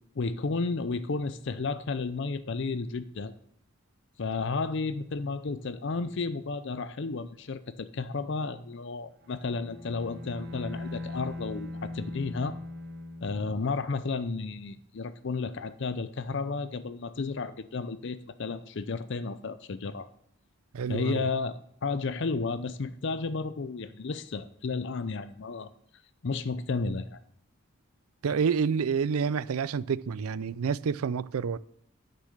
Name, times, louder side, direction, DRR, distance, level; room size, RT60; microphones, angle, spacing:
voice 1, 0.2-3.3 4.2-12.6 13.2-20.1 20.9-25.7 26.2-27.2, left 4 dB, 55° left, 0.5 m, -32 dB
Bowed string instrument, 9.2-14.0, left 2 dB, 50° right, 1.4 m, -40 dB
voice 2, 20.7-21.3 28.2-31.6, right 6 dB, 80° right, 0.4 m, -28 dB
9.8 x 6.7 x 6.5 m
head